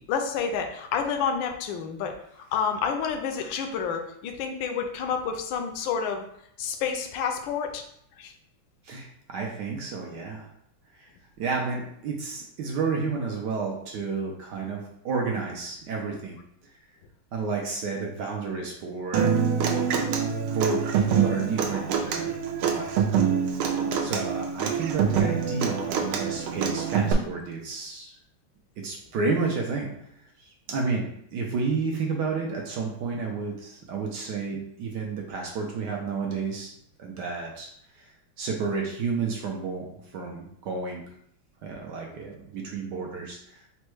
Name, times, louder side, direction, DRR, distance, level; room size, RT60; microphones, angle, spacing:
voice 1, 0.1-6.2 6.6-7.8 8.2-8.3, left 6 dB, 75° left, 4 dB, 1.3 m, -29 dB
voice 2, 8.8-10.5 11.0-11.1 11.4-16.4 17.3-19.3 20.5-23.0 24.0-28.1 28.8-29.9 30.4-36.7 37.0-37.7 38.0-38.1 38.4-41.0 41.6-43.6, right 4 dB, 70° right, 0 dB, 1.1 m, -31 dB
Human voice / Acoustic guitar, 19.1-27.1, right 7 dB, 90° right, 1.5 m, -25 dB
4.2 x 2.2 x 4.5 m, 0.71 s
omnidirectional pair, 2.3 m